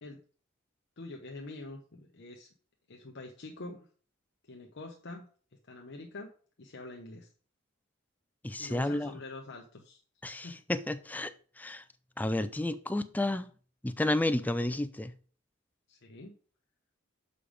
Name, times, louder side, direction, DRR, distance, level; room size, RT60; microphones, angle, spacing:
voice 1, 1.0-2.5 2.9-3.9 4.4-5.3 5.7-6.3 6.6-7.3 8.6-10.0 10.4-10.5 15.9-16.4, left 2 dB, 60° left, 0.9 m, -45 dB
voice 2, 8.4-9.1 10.2-11.8 12.2-13.5 13.8-15.1, left 1 dB, 10° left, 0.4 m, -31 dB
6.9 x 5.0 x 5.1 m
head